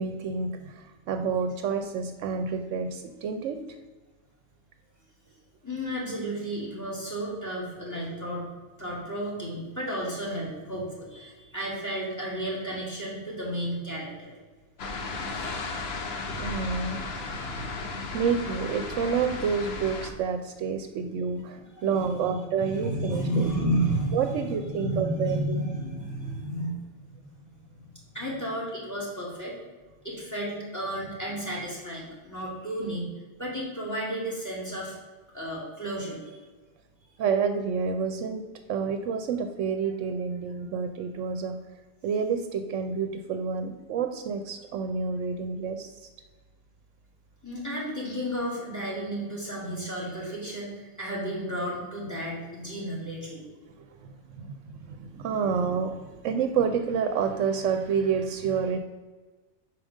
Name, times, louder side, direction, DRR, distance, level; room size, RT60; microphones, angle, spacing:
voice 1, 0.0-3.6 16.4-17.0 18.1-23.5 24.1-25.7 37.2-41.6 42.0-46.1 54.0-58.8, right 6 dB, 75° right, 7 dB, 0.9 m, -29 dB
voice 2, 5.6-8.5 8.8-14.3 15.4-15.7 17.3-18.1 21.5-22.3 22.6-26.8 27.1-27.3 27.7-27.9 28.1-29.5 30.0-33.1 33.4-34.9 35.3-36.4 47.4-53.4, right 1 dB, 15° left, -4 dB, 2.1 m, -32 dB
sound 1, 14.8-20.1, left 3 dB, 55° left, 0.9 m, -35 dB
5.0 x 4.6 x 6.2 m, 1.3 s
omnidirectional pair, 1.3 m